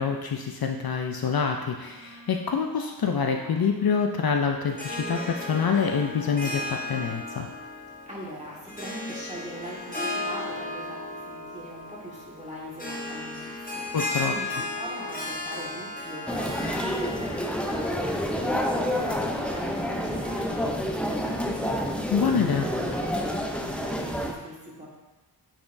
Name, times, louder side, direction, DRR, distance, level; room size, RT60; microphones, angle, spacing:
voice 1, 0.0-7.5 13.9-14.3 22.1-22.6, left 6 dB, 60° left, 3 dB, 0.5 m, -26 dB
sound 1, 1.9-7.7, right 2 dB, 70° right, 0.9 m, -48 dB
Harp, 4.7-18.4, left 2 dB, 20° left, 1.1 m, -35 dB
voice 2, 8.1-24.9, equal, 15° right, -6 dB, 1.8 m, -42 dB
sound 2, 16.3-24.3, equal, 5° left, 0.6 m, -28 dB
8.6 x 4.2 x 2.6 m, 1.1 s
wide cardioid pair, 60°, 43 cm